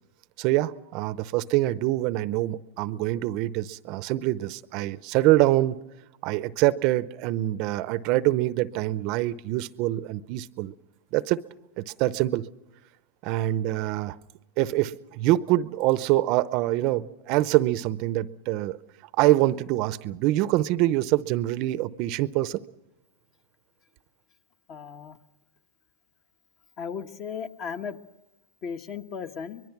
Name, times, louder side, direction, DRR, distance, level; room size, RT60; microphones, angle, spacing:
voice 1, 0.4-5.8 6.2-10.7 11.1-11.4 11.8-12.5 13.2-14.2 14.6-18.8 19.2-22.6, right 16 dB, 45° right, 0.6 m, -25 dB
voice 2, 24.7-25.2 26.8-28.0 28.6-29.6, left 6 dB, 40° left, 1.3 m, -35 dB
23.5 x 22.0 x 6.0 m
supercardioid pair, 135°, 0 cm